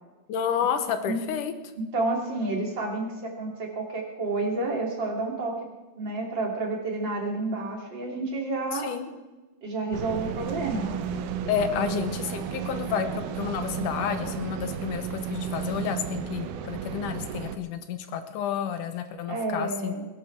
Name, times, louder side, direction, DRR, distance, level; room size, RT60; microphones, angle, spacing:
voice 1, 0.3-1.5 8.7-9.1 11.5-19.9, left 8 dB, 90° left, 9 dB, 2.7 m, -30 dB
voice 2, 1.8-5.7 6.0-8.9 9.6-10.9 11.7-12.0 19.3-20.1, right 2 dB, 35° right, 0 dB, 3.3 m, -30 dB
sound 1, 9.9-17.6, right 7 dB, 80° right, 2.3 m, -33 dB
22.0 x 10.5 x 4.6 m, 1.2 s
omnidirectional pair, 3.5 m